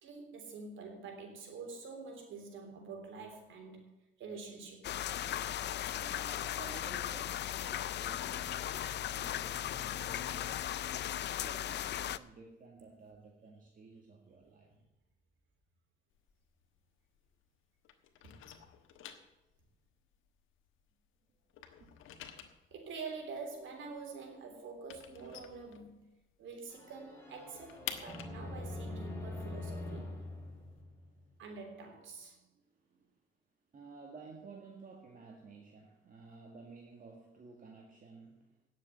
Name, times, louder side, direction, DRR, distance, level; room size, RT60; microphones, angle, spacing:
voice 1, 0.0-3.8 4.2-4.9 18.2-18.4 22.7-26.1 26.4-30.1 31.4-32.4, right 4 dB, 75° right, 3 dB, 3.4 m, -46 dB
sound 1, 4.8-12.2, left 11 dB, 60° left, 0.5 m, -37 dB
voice 2, 5.9-10.8 11.3-14.7 21.8-21.9 22.1-22.4 30.3-31.3 32.3-33.2 33.7-38.6, right 4 dB, 45° right, 1 dB, 2.0 m, -54 dB
sound 2, 16.1-17.6 17.8-21.1 21.3-26.4 26.7-26.8 27.1-30.8, left 10 dB, 90° left, 1.3 m, -49 dB
sound 3, 26.7-31.5, left 2 dB, 15° left, 4.7 m, -44 dB
9.8 x 7.5 x 9.3 m, 0.97 s
cardioid pair, 90°, 20 cm